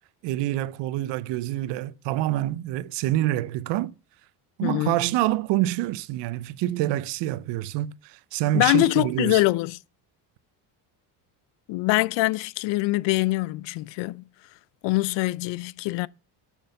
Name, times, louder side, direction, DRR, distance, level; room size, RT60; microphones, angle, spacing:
voice 1, 0.2-3.9 4.6-9.4, right 15 dB, 80° right, 0.8 m, -26 dB
voice 2, 4.6-4.9 8.5-9.8 11.7-14.2 14.8-16.1, left 20 dB, 85° left, 0.6 m, -24 dB
11.0 x 6.3 x 6.6 m
cardioid pair, 175°, 42 cm